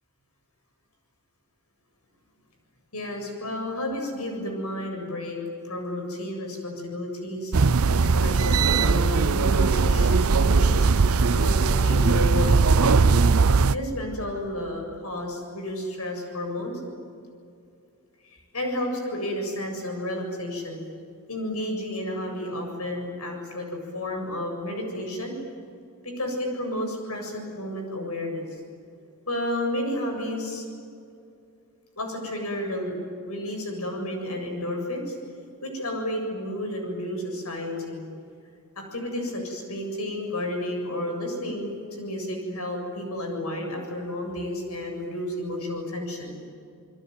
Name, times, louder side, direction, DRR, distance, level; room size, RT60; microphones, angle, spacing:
voice 1, 2.9-5.4 5.6-7.5 8.0-10.9 11.3-13.1 13.7-16.8 18.3-20.8 21.3-23.7 23.9-25.3 26.0-28.5 29.3-30.7 32.0-32.9 33.2-35.1 35.6-38.0 38.8-46.4, left 1 dB, 85° left, 3 dB, 7.5 m, -31 dB
sound 1, 7.5-13.8, right 4 dB, 70° right, 0.7 m, -19 dB
28.0 x 21.5 x 9.6 m, 2.5 s
head